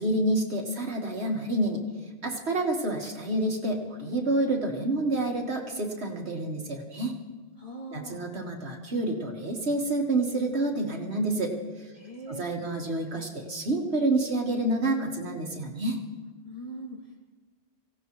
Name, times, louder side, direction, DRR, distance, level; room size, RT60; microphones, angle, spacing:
voice 1, 0.0-1.8 2.2-7.2 7.9-11.9 12.3-16.0, right 2 dB, 75° right, 1 dB, 1.9 m, -28 dB
voice 2, 7.6-8.2 11.9-12.4 16.4-17.3, right 1 dB, 30° left, -2 dB, 2.7 m, -41 dB
24.5 x 16.5 x 3.1 m, 1.3 s
omnidirectional pair, 1.1 m